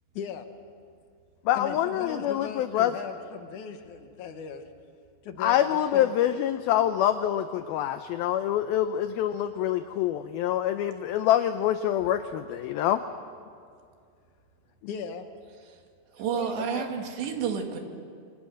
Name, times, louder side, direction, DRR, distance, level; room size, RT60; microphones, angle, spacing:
voice 1, 0.1-0.5 1.5-4.6 5.2-6.1 14.9-15.3 16.3-16.8, left 7 dB, 60° left, 7 dB, 2.2 m, -38 dB
voice 2, 1.5-2.9 5.4-13.0, left 11 dB, 80° left, 9 dB, 2.3 m, -25 dB
voice 3, 16.1-17.8, right 7 dB, 85° right, 3 dB, 4.5 m, -30 dB
27.5 x 26.5 x 6.5 m, 2.3 s
omnidirectional pair, 4.9 m